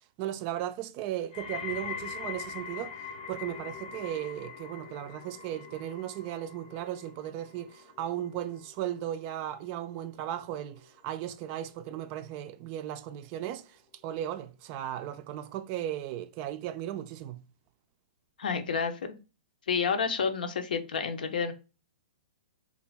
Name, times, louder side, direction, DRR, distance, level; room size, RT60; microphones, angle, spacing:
voice 1, 0.2-3.0 3.3-17.4, right 12 dB, 35° right, 0.3 m, -36 dB
sound 1, 1.3-12.4 12.8-13.3 14.0-14.1, left 7 dB, 40° left, 0.6 m, -44 dB
voice 2, 18.4-19.2 19.7-21.5, left 6 dB, 80° left, 0.6 m, -29 dB
2.9 x 2.5 x 3.3 m
hypercardioid pair, 140°, 5 cm